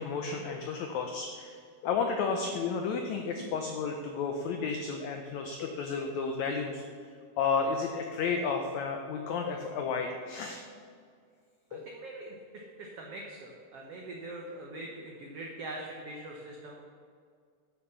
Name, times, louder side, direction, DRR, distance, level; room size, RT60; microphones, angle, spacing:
voice 1, 0.0-6.8 7.4-10.6 11.7-11.9, left 5 dB, 90° left, 4 dB, 1.6 m, -32 dB
voice 2, 11.7-12.3 12.8-16.9, right 2 dB, 80° right, -1 dB, 1.3 m, -43 dB
9.2 x 6.9 x 6.7 m, 2.1 s
omnidirectional pair, 4.2 m